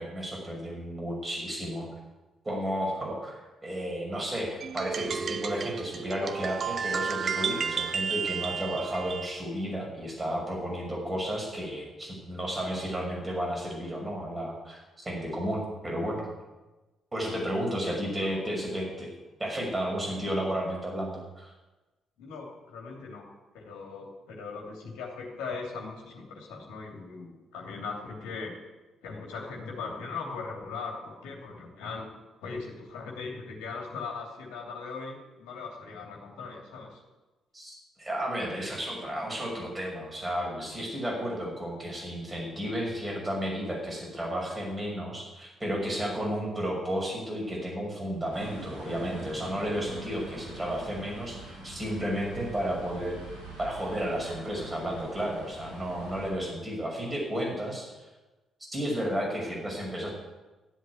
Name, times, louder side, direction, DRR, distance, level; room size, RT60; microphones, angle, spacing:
voice 1, 0.0-1.9 2.4-16.3 17.1-19.1 19.4-21.5 37.5-53.2 53.6-57.9 58.7-60.1, equal, 20° right, -1 dB, 6.2 m, -32 dB
sound 1, 4.6-9.4, right 6 dB, 45° right, 0.8 m, -32 dB
voice 2, 17.8-18.5 22.2-23.2 23.5-28.6 29.0-32.1 32.4-37.0, left 4 dB, 65° left, 0 dB, 2.9 m, -39 dB
sound 2, 48.3-56.3, right 2 dB, 75° right, 3.9 m, -44 dB
13.0 x 8.0 x 9.5 m, 1.1 s
figure-of-eight pair, 40°, 0 cm